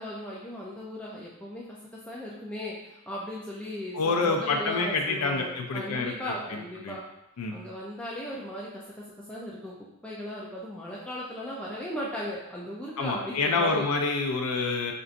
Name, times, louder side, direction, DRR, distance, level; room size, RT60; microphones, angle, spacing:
voice 1, 0.0-1.6 1.9-7.0 7.5-8.8 9.3-9.7 10.0-13.8, equal, 5° left, -6 dB, 0.4 m, -37 dB
voice 2, 3.9-6.9 7.4-7.5 13.0-14.9, left 3 dB, 85° left, 2 dB, 0.4 m, -27 dB
4.4 x 2.5 x 2.5 m, 0.86 s
head